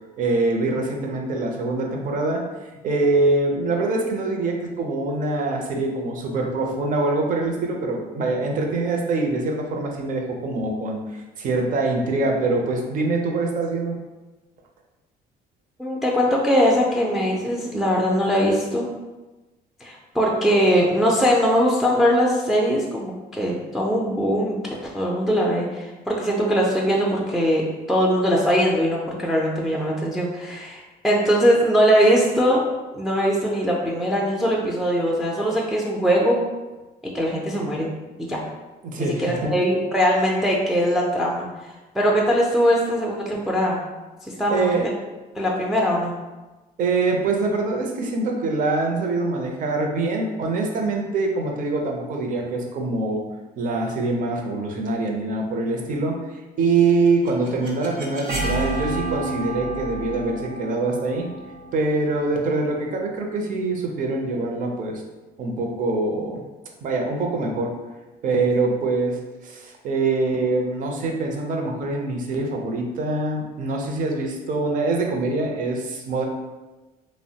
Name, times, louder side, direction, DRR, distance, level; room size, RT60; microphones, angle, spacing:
voice 1, 0.2-2.4 2.8-14.0 38.8-39.5 44.5-44.9 46.8-53.2 53.6-56.2 56.6-61.3 61.7-65.0 65.4-66.4 66.8-67.8 68.2-76.3, right 3 dB, 50° right, 2 dB, 0.5 m, -24 dB
voice 2, 15.8-18.9 19.8-24.6 24.8-32.6 32.9-36.4 37.1-37.9 38.3-38.4 39.0-41.5 41.9-43.8 44.4-44.7 45.4-46.1, equal, ahead, -4 dB, 0.3 m, -21 dB
sound 1, 56.8-62.7, right 2 dB, 90° right, 0.8 m, -30 dB
3.0 x 2.1 x 2.7 m, 1.1 s
cardioid pair, 110°, 17 cm